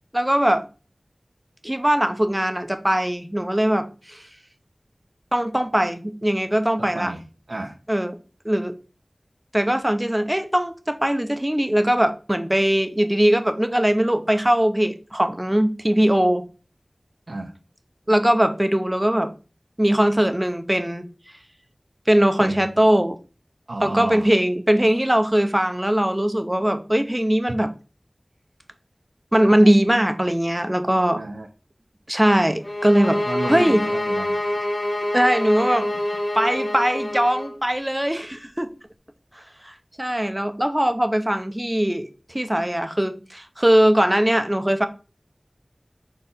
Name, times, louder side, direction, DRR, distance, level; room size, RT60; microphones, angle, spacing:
voice 1, 0.1-0.7 1.6-4.2 5.3-7.1 7.9-8.2 8.4-8.7 9.5-16.4 18.1-19.3 19.8-21.1 22.1-23.2 23.8-27.7 29.3-31.2 32.1-33.2 33.5-33.8 35.1-35.9 36.3-38.7 39.6-39.7 40.0-42.1 42.3-44.9, right 1 dB, 15° right, 0.8 m, -20 dB
voice 2, 6.8-7.8 17.3-17.5 22.4-22.7 23.7-24.3 31.1-31.5 33.2-34.6 35.9-36.0, right 2 dB, 70° right, 0.7 m, -32 dB
sound 1, 32.6-37.5, left 1 dB, 50° left, 1.1 m, -26 dB
4.5 x 3.9 x 5.5 m
wide cardioid pair, 50°, 0 cm